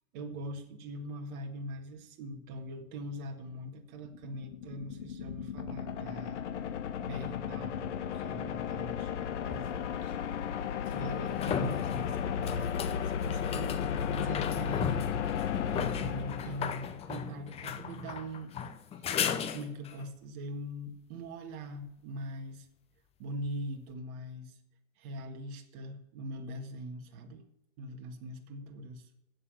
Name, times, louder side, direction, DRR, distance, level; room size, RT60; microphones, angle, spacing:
voice 1, 0.1-6.4 7.0-10.2 10.9-13.7 14.1-15.0 15.7-18.5 19.0-19.2 19.5-22.7 23.2-24.6 25.0-27.4 27.8-29.1, right 1 dB, 35° right, 4 dB, 1.8 m, -42 dB
sound 1, 4.0-17.1, left 8 dB, 55° left, 1.4 m, -35 dB
sound 2, 9.5-9.6 10.9-20.0 23.4-23.5, left 7 dB, 15° left, 0.7 m, -36 dB
11.0 x 8.3 x 8.4 m, 0.86 s
hypercardioid pair, 120°, 41 cm